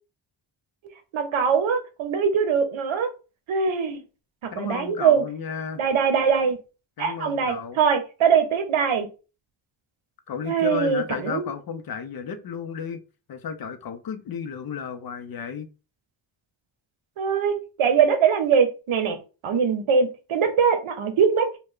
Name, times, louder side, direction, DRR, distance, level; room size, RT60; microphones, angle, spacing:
voice 1, 1.1-3.1 3.5-4.0 4.4-5.2 5.8-6.6 7.0-9.1 10.5-11.5 17.2-19.2 19.4-21.5, right 6 dB, 80° right, 0.8 m, -22 dB
voice 2, 4.5-5.8 7.0-7.8 10.3-13.0 13.3-15.7, left 7 dB, 50° left, 0.5 m, -33 dB
3.2 x 2.2 x 3.6 m
wide cardioid pair, 120°, 47 cm